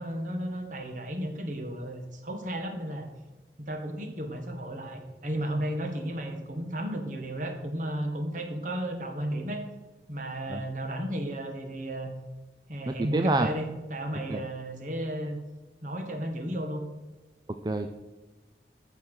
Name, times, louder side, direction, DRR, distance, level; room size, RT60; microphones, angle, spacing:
voice 1, 0.0-3.1 3.7-9.7 10.1-12.1 12.7-15.4 15.8-16.8, right 1 dB, 45° right, 4 dB, 1.8 m, -33 dB
voice 2, 12.9-13.5 14.3-14.4 17.6-18.1, right 2 dB, 25° right, 7 dB, 0.5 m, -28 dB
14.0 x 6.1 x 6.4 m, 1.2 s
head